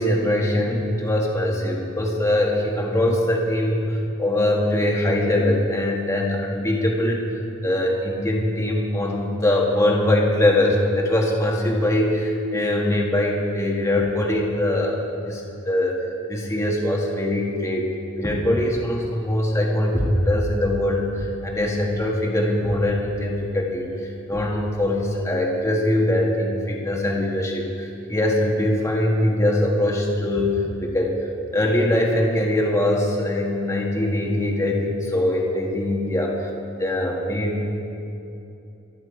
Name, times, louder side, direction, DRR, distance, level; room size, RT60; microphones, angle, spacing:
voice 1, 0.0-17.8 18.2-31.1 31.5-36.5 36.8-37.8, left 1 dB, 15° left, -2 dB, 1.5 m, -22 dB
24.5 x 8.8 x 4.8 m, 2.8 s
head